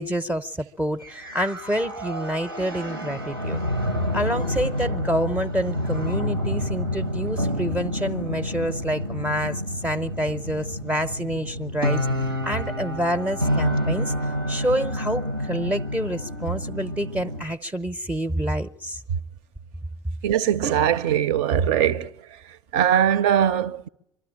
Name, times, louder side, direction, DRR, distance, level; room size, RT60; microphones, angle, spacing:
voice 1, 0.0-3.6 4.1-12.1 12.4-14.1 14.5-19.0, equal, 10° right, 0.7 m, -27 dB
sound 1, 1.0-17.4, equal, 90° right, 1.0 m, -28 dB
voice 2, 20.2-22.1 22.7-23.9, right 9 dB, 55° right, 0.7 m, -21 dB
23.5 x 13.0 x 8.8 m
figure-of-eight pair, 65°, 12 cm